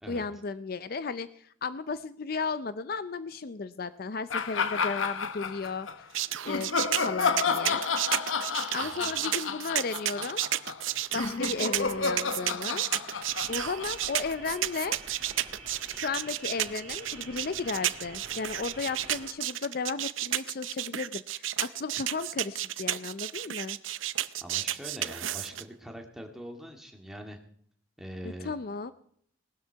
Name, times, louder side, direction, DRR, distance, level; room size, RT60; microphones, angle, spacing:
voice 1, 0.1-5.9 6.4-7.8 8.7-10.4 11.1-12.9 13.5-15.0 15.9-23.8 28.2-28.9, left 4 dB, 50° left, 13 dB, 0.5 m, -34 dB
sound 1, 4.3-5.9 6.5-14.7, left 5 dB, 85° left, 1.0 m, -31 dB
sound 2, 6.1-25.6, right 13 dB, 80° right, 0.6 m, -32 dB
voice 2, 8.8-9.3 24.4-27.4 28.0-28.6, equal, ahead, 2 dB, 2.0 m, -43 dB
sound 3, 11.1-19.3, right 3 dB, 30° right, 6.0 m, -48 dB
18.5 x 12.5 x 4.6 m, 0.63 s
head